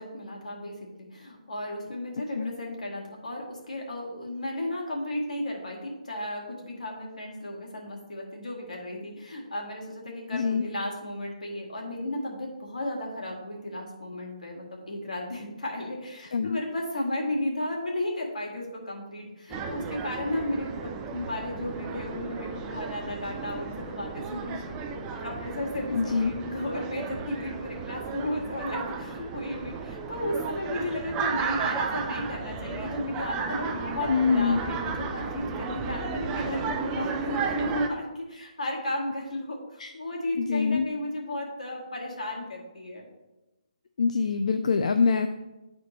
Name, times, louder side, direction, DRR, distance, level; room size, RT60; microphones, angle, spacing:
voice 1, 0.0-43.1, left 1 dB, 80° left, 0 dB, 2.0 m, -34 dB
voice 2, 10.3-10.6 16.3-16.6 25.9-26.3 34.1-34.6 39.8-39.9 40.4-40.9 44.0-45.3, left 5 dB, 65° left, 7 dB, 0.4 m, -24 dB
sound 1, 19.5-37.9, right 5 dB, 20° right, 0.5 m, -34 dB
10.5 x 4.2 x 3.1 m, 1.0 s
hypercardioid pair, 150°, 4 cm